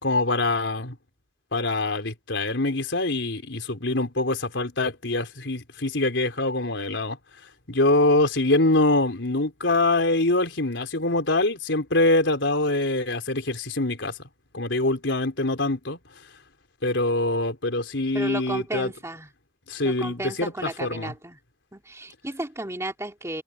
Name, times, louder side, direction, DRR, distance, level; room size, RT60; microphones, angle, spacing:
voice 1, 0.0-1.0 1.5-7.2 7.7-14.1 14.5-16.0 16.8-18.9 19.7-21.1, left 2 dB, 85° left, 3.9 m, -24 dB
voice 2, 18.1-19.3 19.8-21.4 21.7-23.4, right 1 dB, 15° right, 2.8 m, -33 dB
head